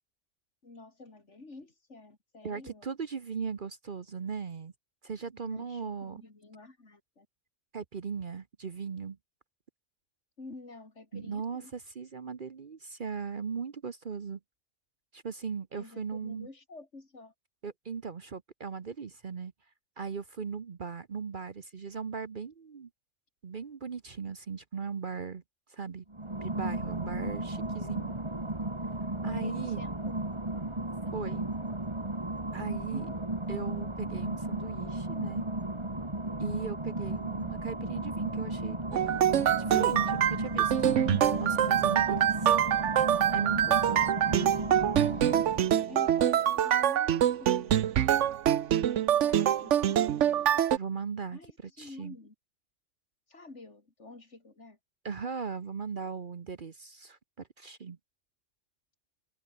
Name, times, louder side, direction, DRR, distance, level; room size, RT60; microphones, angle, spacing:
voice 1, 0.6-2.9 5.4-7.3 10.4-11.7 15.8-17.3 29.3-30.2 32.9-33.3 45.8-48.0 48.7-50.1 51.3-52.3 53.3-54.8, left 3 dB, 65° left, 3.8 m, -49 dB
voice 2, 2.4-4.7 5.0-6.2 7.7-9.2 11.1-14.4 15.1-16.5 17.6-19.5 20.0-22.9 23.4-25.4 25.7-26.0 26.4-28.1 29.2-29.8 31.1-31.5 32.5-33.1 33.5-35.4 36.4-38.8 39.6-40.7 41.4-42.6 43.3-44.1 50.7-51.4 51.8-52.2 55.0-58.0, right 6 dB, 45° right, 1.0 m, -38 dB
sound 1, 26.1-45.8, right 2 dB, 20° right, 2.4 m, -35 dB
sound 2, 38.9-50.8, right 10 dB, 70° right, 1.1 m, -25 dB
omnidirectional pair, 1.3 m